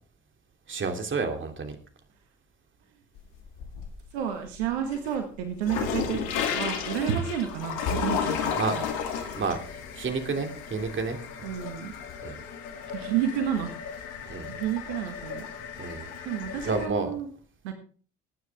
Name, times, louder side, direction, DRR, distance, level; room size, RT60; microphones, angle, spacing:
voice 1, 0.7-1.8 8.6-9.0 9.3-11.2 12.2-12.4 14.3-14.5 15.8-16.1 16.6-17.1, right 4 dB, 35° right, 6 dB, 2.9 m, -30 dB
sound 1, 3.2-4.1 4.5-16.9, left 7 dB, 70° left, 2.3 m, -34 dB
voice 2, 4.1-8.9 11.4-11.9 12.9-13.7 14.5-15.5 16.2-17.3 17.6-17.7, right 9 dB, 80° right, 6 dB, 1.6 m, -30 dB
20.0 x 9.4 x 3.6 m, 0.41 s
hypercardioid pair, 60°, 32 cm